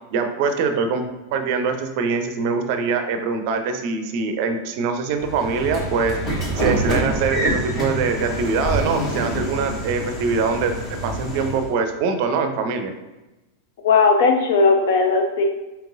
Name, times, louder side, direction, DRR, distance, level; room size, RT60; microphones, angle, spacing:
voice 1, 0.1-10.7 11.0-12.9, right 4 dB, 45° right, 6 dB, 0.5 m, -23 dB
Train / Sliding door, 5.2-11.7, right 1 dB, 30° left, 1.1 m, -26 dB
voice 2, 13.8-15.5, left 4 dB, 55° left, 4 dB, 0.6 m, -17 dB
5.3 x 2.8 x 2.5 m, 1.0 s
figure-of-eight pair, 90°, 0 cm